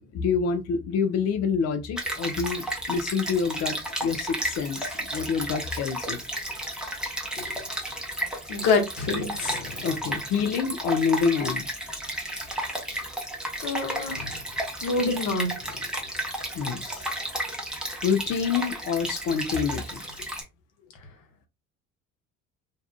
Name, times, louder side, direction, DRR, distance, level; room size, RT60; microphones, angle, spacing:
voice 1, 0.1-6.2 9.8-11.7 16.5-17.1 18.0-20.0, left 6 dB, 40° left, 0.5 m, -27 dB
Stream, 2.0-20.4, right 1 dB, ahead, 0.8 m, -33 dB
voice 2, 8.5-9.8 13.6-14.3 14.8-15.6, left 3 dB, 60° left, 1.0 m, -26 dB
2.6 x 2.3 x 2.2 m
hypercardioid pair, 60°, 40 cm